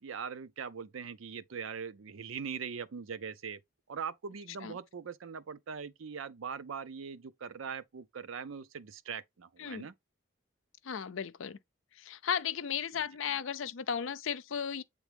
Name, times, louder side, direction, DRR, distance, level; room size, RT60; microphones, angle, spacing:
voice 1, 0.0-3.6 3.9-9.9, right 6 dB, 75° right, 0.5 m, -41 dB
voice 2, 10.8-11.6 12.0-14.8, left 7 dB, 70° left, 0.5 m, -35 dB
8.1 x 3.5 x 3.4 m
head